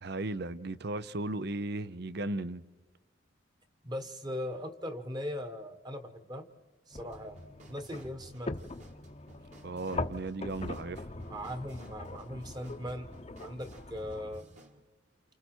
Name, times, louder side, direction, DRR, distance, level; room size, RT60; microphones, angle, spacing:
voice 1, 0.0-2.6 9.6-11.1, right 2 dB, 55° right, 0.7 m, -36 dB
voice 2, 3.8-6.5 6.9-7.4 7.7-8.5 11.2-13.1 13.4-14.5, equal, 20° right, 1.4 m, -39 dB
sound 1, 6.9-14.4, left 2 dB, 30° left, 0.8 m, -42 dB
sound 2, 7.1-14.8, equal, 40° right, 1.8 m, -56 dB
29.0 x 28.5 x 4.5 m
head